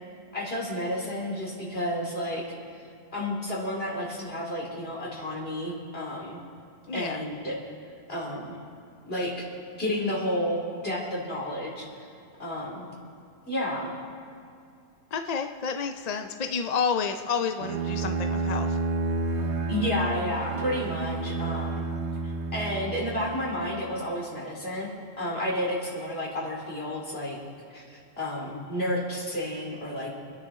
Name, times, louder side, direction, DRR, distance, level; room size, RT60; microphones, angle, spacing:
voice 1, 0.3-2.4 3.1-6.4 6.9-7.6 8.1-8.6 9.1-9.5 9.7-12.1 12.4-12.9 13.5-13.9 19.7-21.9 22.2-24.9 25.2-27.4 27.7-30.1, left 1 dB, 65° left, -3 dB, 3.2 m, -31 dB
voice 2, 6.9-7.2 15.1-18.8, left 6 dB, 45° left, 6 dB, 0.6 m, -30 dB
Bowed string instrument, 17.6-23.4, right 3 dB, 85° right, 1.2 m, -30 dB
26.5 x 9.9 x 3.7 m, 2.4 s
omnidirectional pair, 1.1 m